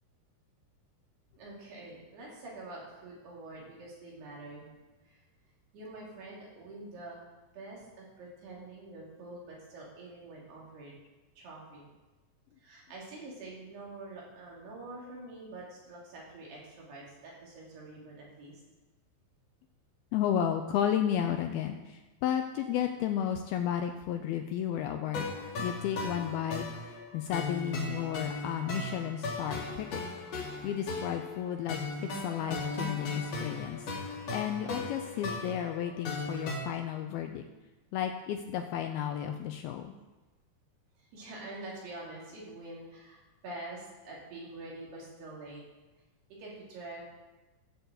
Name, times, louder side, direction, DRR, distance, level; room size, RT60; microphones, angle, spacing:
voice 1, 1.4-5.2 5.7-7.2 7.5-10.9 11.4-11.9 12.6-18.6 41.1-45.6 46.4-47.0, right 2 dB, 70° right, -4 dB, 5.0 m, -46 dB
voice 2, 20.1-25.3 25.6-26.6 27.1-30.0 30.6-33.9 34.3-37.4 37.9-39.9, left 9 dB, 80° left, 5 dB, 2.3 m, -33 dB
sound 1, 25.1-36.6, left 3 dB, 45° left, 3.0 m, -37 dB
11.5 x 6.8 x 8.0 m, 1.2 s
omnidirectional pair, 4.9 m